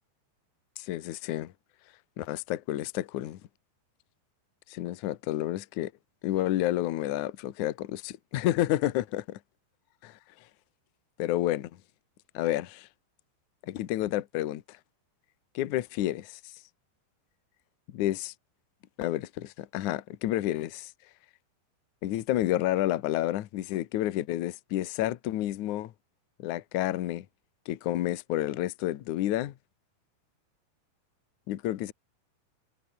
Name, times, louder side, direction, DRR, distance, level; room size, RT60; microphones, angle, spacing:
voice 1, 0.8-1.5 2.2-3.4 4.7-5.9 6.2-9.2 11.2-11.7 12.3-12.9 13.7-14.6 15.5-16.4 17.9-18.3 19.0-20.9 22.0-25.9 26.4-27.3 27.7-29.5 31.5-31.9, left 14 dB, 70° left, 1.9 m, -30 dB
omnidirectional pair, 5.1 m